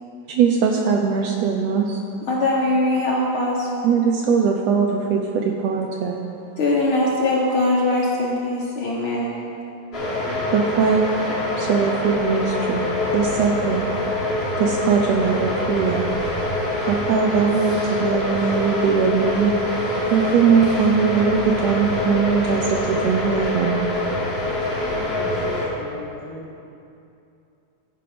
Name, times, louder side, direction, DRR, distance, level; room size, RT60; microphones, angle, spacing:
voice 1, 0.3-2.0 3.8-6.2 10.5-11.2 11.6-12.9 13.1-13.8 14.6-16.1 16.9-19.5 20.1-23.8, right 6 dB, 85° right, 2 dB, 1.5 m, -20 dB
voice 2, 2.3-3.7 6.6-9.3, left 2 dB, 65° left, -4 dB, 1.3 m, -21 dB
sound 1, 9.9-25.7, left 2 dB, 40° left, 0.8 m, -25 dB
voice 3, 24.8-26.6, left 2 dB, 35° right, -6 dB, 2.3 m, -37 dB
13.5 x 5.4 x 5.0 m, 2.7 s
omnidirectional pair, 3.5 m